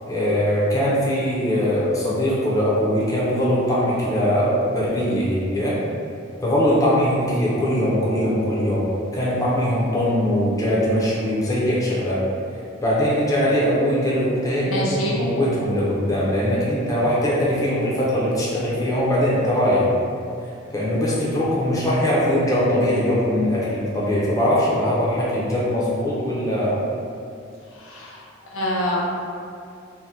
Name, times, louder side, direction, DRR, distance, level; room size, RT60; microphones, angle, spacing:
voice 1, 0.1-5.7 6.4-8.9 9.1-12.2 12.8-19.9 20.7-26.8, equal, 15° left, -7 dB, 0.6 m, -21 dB
voice 2, 14.7-15.2 27.7-28.2 28.5-29.1, left 1 dB, 90° left, -4 dB, 0.6 m, -26 dB
2.8 x 2.2 x 3.5 m, 2.4 s
head